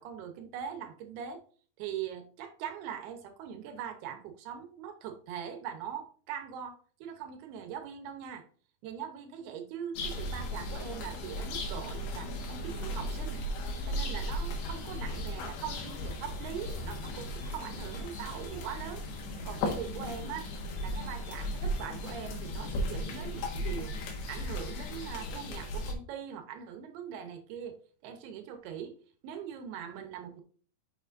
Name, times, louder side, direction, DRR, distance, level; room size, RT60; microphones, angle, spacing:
voice 1, 0.0-1.4 1.8-8.5 8.8-13.4 13.9-19.0 19.4-20.5 20.8-23.9 24.3-28.9 29.2-30.4, right 8 dB, 75° right, 6 dB, 2.7 m, -41 dB
sound 1, 10.0-25.9, left 1 dB, 90° left, 3.8 m, -36 dB
sound 2, 15.8-22.4, left 1 dB, 75° left, 3.7 m, -49 dB
9.1 x 5.8 x 2.6 m, 0.43 s
omnidirectional pair, 5.0 m